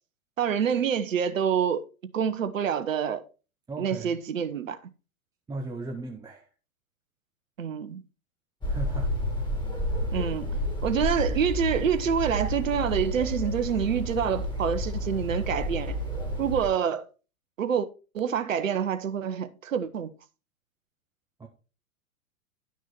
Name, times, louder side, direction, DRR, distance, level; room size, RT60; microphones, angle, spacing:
voice 1, 0.4-3.2 3.8-4.8 7.6-8.0 10.1-10.5 10.8-16.0 16.4-17.1 17.6-17.9 18.1-20.1, right 7 dB, 65° right, 1.2 m, -27 dB
voice 2, 3.7-4.2 5.5-6.5 8.6-9.2 21.4-21.5, right 2 dB, 10° right, 0.9 m, -37 dB
sound 1, 8.6-16.7, equal, 10° left, 3.6 m, -30 dB
11.5 x 6.0 x 4.3 m
figure-of-eight pair, 100°, 42 cm